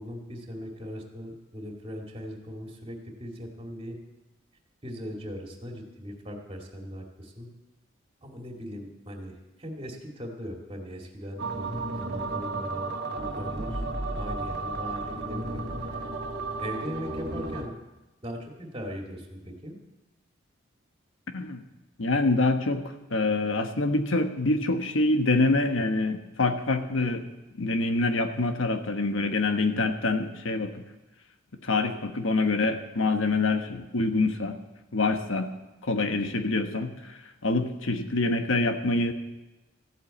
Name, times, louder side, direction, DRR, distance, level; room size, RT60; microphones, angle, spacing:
voice 1, 0.0-4.0 4.8-7.5 8.2-13.8 14.1-15.6 16.6-17.7 18.2-19.7, equal, 30° right, 1 dB, 2.3 m, -39 dB
sound 1, 11.4-17.7, right 3 dB, 55° right, 1.6 m, -33 dB
voice 2, 22.0-22.8 23.1-27.2 27.6-30.8 31.6-34.6 34.9-35.5 35.8-39.1, left 2 dB, 85° left, 6 dB, 1.2 m, -26 dB
14.5 x 8.4 x 8.4 m, 1.1 s
head